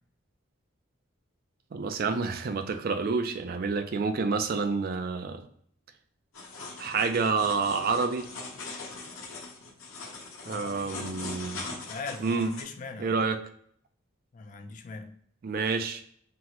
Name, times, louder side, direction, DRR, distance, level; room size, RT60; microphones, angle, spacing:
voice 1, 1.7-5.5 6.8-8.3 10.5-11.6 12.2-12.5 13.0-13.4 15.4-16.0, right 4 dB, 45° right, 8 dB, 0.3 m, -28 dB
sound 1, 6.3-12.6, left 3 dB, 85° left, 0.8 m, -41 dB
voice 2, 10.4-11.0 11.8-13.2 14.3-15.1, left 4 dB, 40° left, 7 dB, 0.3 m, -40 dB
3.6 x 2.1 x 2.9 m, 0.64 s
head